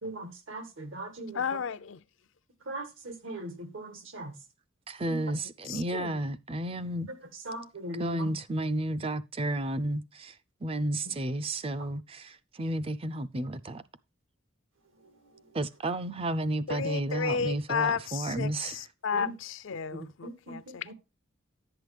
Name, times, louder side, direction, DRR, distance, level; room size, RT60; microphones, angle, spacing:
voice 1, 0.0-1.4 2.6-4.4 5.1-5.3 7.1-8.3 11.1-11.2 11.8-11.9 15.0-15.5 19.1-19.4 19.9-20.9, right 1 dB, 80° right, 1.8 m, -40 dB
voice 2, 1.3-2.0 5.7-6.2 16.7-20.8, left 6 dB, 70° left, 0.5 m, -33 dB
voice 3, 4.9-7.1 8.0-10.3 10.6-13.8 15.5-18.7, right 1 dB, 30° right, 0.5 m, -32 dB
11.0 x 7.9 x 3.4 m
head